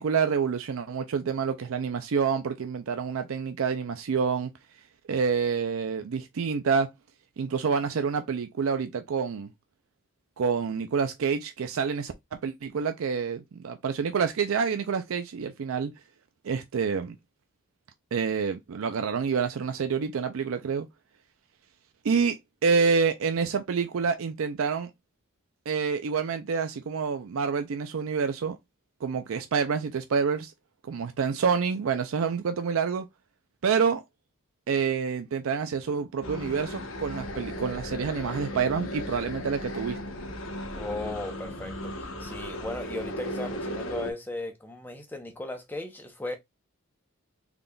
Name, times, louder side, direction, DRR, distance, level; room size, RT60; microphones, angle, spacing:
voice 1, 0.0-4.5 5.1-6.9 7.4-9.5 10.4-12.1 12.4-15.9 16.4-17.2 18.1-20.9 22.0-22.4 22.6-24.9 25.7-28.6 29.0-30.5 30.9-33.1 33.6-34.0 34.7-40.0, right 6 dB, 75° right, 0.4 m, -27 dB
sound 1, 36.2-44.1, equal, 70° left, 0.9 m, -36 dB
voice 2, 40.7-46.4, left 2 dB, 10° left, 0.7 m, -36 dB
3.8 x 3.5 x 2.2 m
head